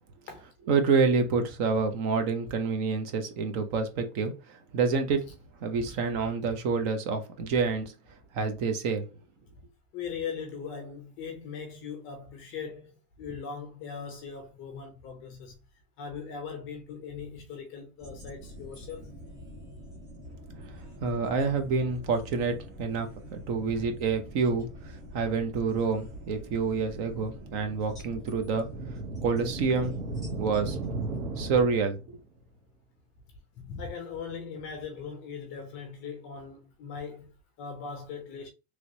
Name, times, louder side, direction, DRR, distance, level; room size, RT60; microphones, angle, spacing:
voice 1, 0.7-5.3 5.6-7.9 8.3-9.1 21.0-28.7 29.2-29.9 30.4-30.8 31.4-32.2, right 5 dB, 40° right, 0.6 m, -28 dB
voice 2, 9.9-15.6 16.0-19.1 23.7-23.8 27.2-27.3 28.1-28.2 33.6-38.5, left 6 dB, 25° left, 0.5 m, -40 dB
sound 1, 18.0-31.2, left 1 dB, 10° right, 1.2 m, -45 dB
sound 2, 28.4-32.2, right 3 dB, 65° right, 1.1 m, -36 dB
3.1 x 2.8 x 2.7 m
supercardioid pair, 145°, 47 cm